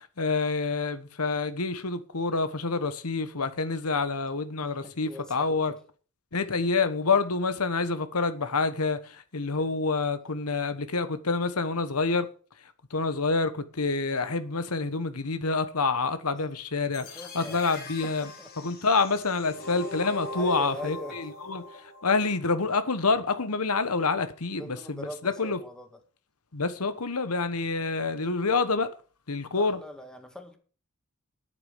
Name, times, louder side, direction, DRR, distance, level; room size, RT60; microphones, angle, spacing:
voice 1, 0.0-5.7 6.3-12.3 12.9-18.3 18.6-21.6 22.0-25.6 26.5-28.9 29.3-29.8, left 4 dB, 90° left, 1.2 m, -27 dB
voice 2, 4.6-5.8 9.6-9.8 17.0-17.7 18.0-18.1 18.4-18.5 19.6-19.8 20.3-21.2 24.6-26.0 29.5-30.6, equal, 5° left, 1.9 m, -42 dB
sound 1, 16.9-22.9, left 2 dB, 45° left, 2.9 m, -41 dB
9.7 x 8.8 x 7.2 m
head